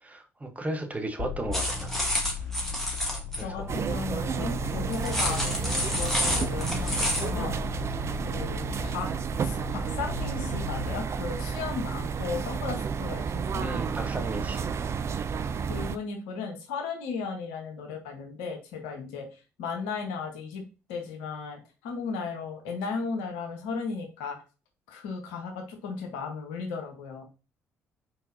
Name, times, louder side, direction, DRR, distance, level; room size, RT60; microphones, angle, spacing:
voice 1, 0.0-2.0 3.3-3.7 13.6-14.7, right 1 dB, 20° right, 4 dB, 1.0 m, -35 dB
sound 1, 1.2-11.0, left 5 dB, 45° left, 1.9 m, -37 dB
sound 2, 1.5-3.4 4.9-7.3, equal, 5° left, 1.7 m, -29 dB
voice 2, 3.4-6.9 7.2-7.6 8.2-9.1 9.4-13.6 15.7-20.6 20.9-24.4 24.9-27.2, left 5 dB, 70° left, 3 dB, 1.0 m, -35 dB
sound 3, 3.7-16.0, right 6 dB, 40° right, 0.4 m, -31 dB
4.3 x 3.8 x 2.6 m, 0.32 s
figure-of-eight pair, 45°, 7 cm